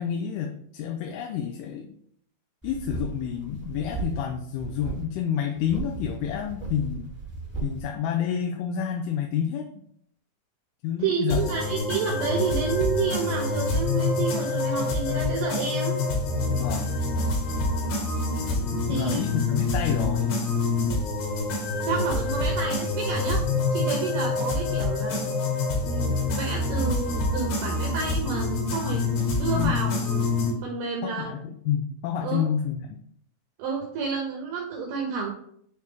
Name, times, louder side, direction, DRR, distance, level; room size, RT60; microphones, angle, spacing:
voice 1, 0.0-2.0 2.6-7.1 7.6-9.7 10.8-11.4 16.5-16.9 18.7-20.4 29.6-29.8 31.0-33.0, left 8 dB, 85° left, 3 dB, 3.0 m, -29 dB
sound 1, 2.6-4.3 4.6-5.0 5.5-7.8, right 5 dB, 15° left, 0.3 m, -36 dB
voice 2, 11.0-16.0 18.9-19.2 21.8-23.4 23.7-25.4 25.8-29.1 29.4-30.3 30.6-31.4 32.2-32.4 33.6-35.3, right 5 dB, 90° right, 0 dB, 2.2 m, -30 dB
sound 2, 11.3-30.5, left 3 dB, 65° left, 2.7 m, -26 dB
9.1 x 3.3 x 3.5 m, 0.67 s
omnidirectional pair, 5.6 m